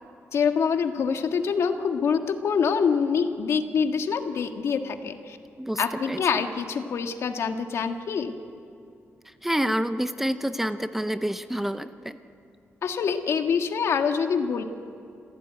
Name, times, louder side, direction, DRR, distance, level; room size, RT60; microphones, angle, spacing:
voice 1, 0.3-5.4 5.8-8.4 12.8-14.6, left 6 dB, 65° left, 6 dB, 1.6 m, -25 dB
voice 2, 6.1-6.4 9.4-12.2, equal, 5° right, 10 dB, 0.7 m, -28 dB
27.5 x 15.5 x 9.2 m, 2.5 s
wide cardioid pair, 140°, 5 cm